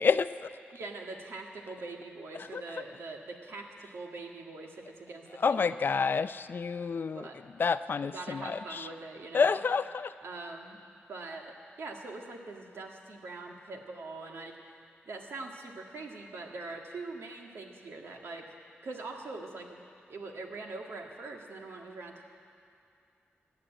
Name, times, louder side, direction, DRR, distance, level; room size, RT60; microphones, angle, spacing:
voice 1, 0.0-0.5 2.3-2.6 5.4-7.3 7.6-8.9 9.3-10.1, left 5 dB, 55° left, 13 dB, 0.5 m, -29 dB
voice 2, 0.7-5.7 7.1-7.4 8.0-9.6 10.2-10.8 11.1-14.6 15.1-18.4 18.8-19.8 20.1-22.2, right 3 dB, 75° right, 1 dB, 1.9 m, -43 dB
15.0 x 9.7 x 8.9 m, 2.5 s
cardioid pair, 65°, 4 cm